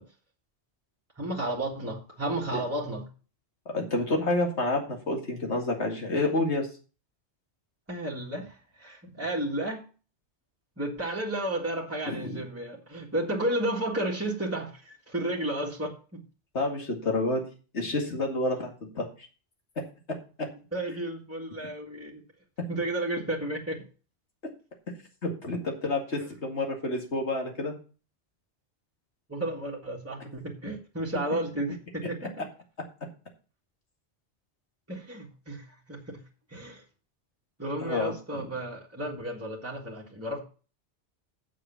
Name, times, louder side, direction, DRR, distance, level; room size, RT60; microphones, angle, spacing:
voice 1, 1.2-3.1 7.9-9.8 10.8-16.2 20.7-22.2 22.7-23.8 26.2-26.3 29.3-32.5 34.9-36.2 36.5-36.8 37.6-40.4, right 1 dB, 15° right, -2 dB, 1.8 m, -32 dB
voice 2, 3.7-6.7 12.1-12.4 16.5-17.4 17.7-19.1 20.4-20.5 25.2-27.8 37.8-38.5, left 2 dB, 85° left, 2 dB, 2.5 m, -29 dB
7.4 x 6.7 x 7.1 m, 0.36 s
omnidirectional pair, 1.1 m